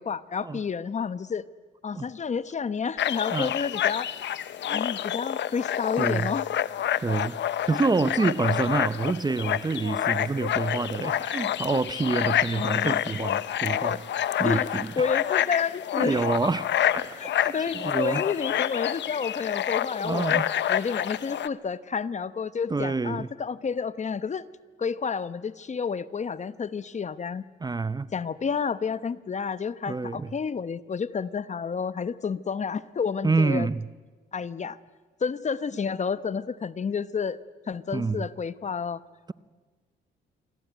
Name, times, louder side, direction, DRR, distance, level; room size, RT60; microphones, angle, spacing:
voice 1, 0.0-1.4 1.8-4.1 4.7-6.5 12.5-13.0 14.4-14.7 15.0-16.2 17.1-20.4 20.7-24.4 24.8-27.4 28.1-33.7 34.3-34.8 35.2-37.4 37.7-39.0, left 6 dB, 35° left, 1.0 m, -30 dB
sound 1, 3.0-21.5, left 11 dB, 65° left, 1.0 m, -28 dB
voice 2, 6.0-6.3 7.0-7.4 7.7-14.0 14.4-15.1 16.0-16.7 16.9-17.1 17.4-18.2 20.0-20.5 22.7-23.3 27.6-28.1 29.9-30.3 33.2-33.9 37.9-38.3, right 3 dB, 20° right, 0.7 m, -27 dB
28.0 x 22.5 x 9.3 m
cardioid pair, 90°, 20 cm